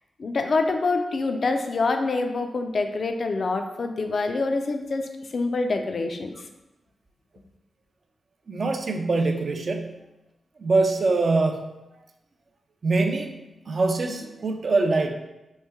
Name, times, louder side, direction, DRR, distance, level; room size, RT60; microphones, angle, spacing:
voice 1, 0.2-6.5, left 3 dB, 60° left, 6 dB, 0.3 m, -26 dB
voice 2, 8.5-10.0 10.6-11.7 12.8-13.4 13.7-15.2, right 3 dB, 55° right, 4 dB, 0.4 m, -23 dB
3.0 x 2.2 x 3.4 m, 0.98 s
supercardioid pair, 40°, 0 cm